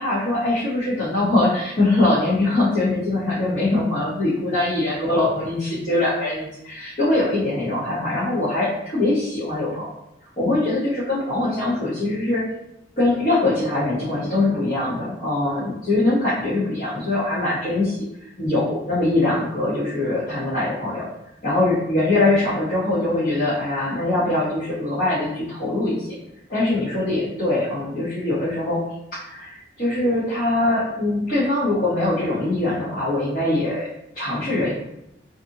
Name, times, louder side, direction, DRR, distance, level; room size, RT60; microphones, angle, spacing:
voice 1, 0.0-9.9 10.4-12.4 13.0-21.0 21.4-26.1 26.5-28.8 29.1-33.9 34.1-34.7, left 2 dB, 45° left, -11 dB, 0.9 m, -22 dB
2.5 x 2.5 x 2.6 m, 0.81 s
head